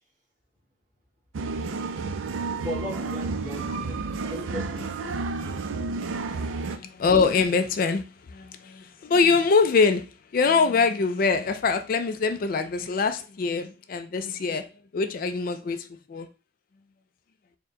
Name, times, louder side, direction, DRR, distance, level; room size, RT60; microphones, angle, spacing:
sound 1, 1.3-6.8, right 3 dB, 85° right, 0.4 m, -31 dB
voice 1, 2.6-5.6, equal, 40° right, 1.5 m, -37 dB
voice 2, 6.6-10.1 10.3-14.7 14.9-16.3, left 4 dB, 45° left, 0.3 m, -24 dB
4.4 x 2.2 x 3.7 m
head